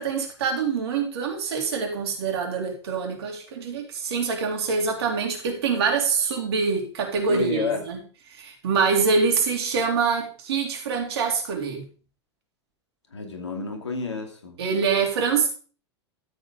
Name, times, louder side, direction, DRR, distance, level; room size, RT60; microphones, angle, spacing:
voice 1, 0.0-8.0 8.4-11.9 14.6-15.5, right 5 dB, 60° right, 3.5 m, -25 dB
voice 2, 7.3-7.8 13.1-14.6, left 4 dB, 75° left, 2.8 m, -30 dB
12.5 x 8.1 x 3.8 m
figure-of-eight pair, 90°, 15 cm